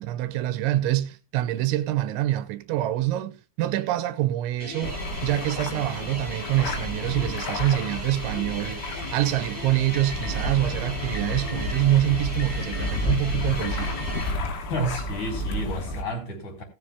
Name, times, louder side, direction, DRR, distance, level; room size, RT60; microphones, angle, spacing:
voice 1, 0.0-14.0, right 14 dB, 85° right, 3.1 m, -26 dB
sound 1, 4.6-14.4, equal, 10° left, 1.7 m, -38 dB
sound 2, 4.8-16.0, left 1 dB, 80° left, 4.4 m, -31 dB
Alarm, 9.9-10.5 11.2-11.7 12.4-13.1 13.6-14.2, left 1 dB, 65° left, 3.2 m, -41 dB
voice 2, 14.7-16.6, equal, 40° left, 4.7 m, -31 dB
17.5 x 7.7 x 3.5 m
omnidirectional pair, 5.4 m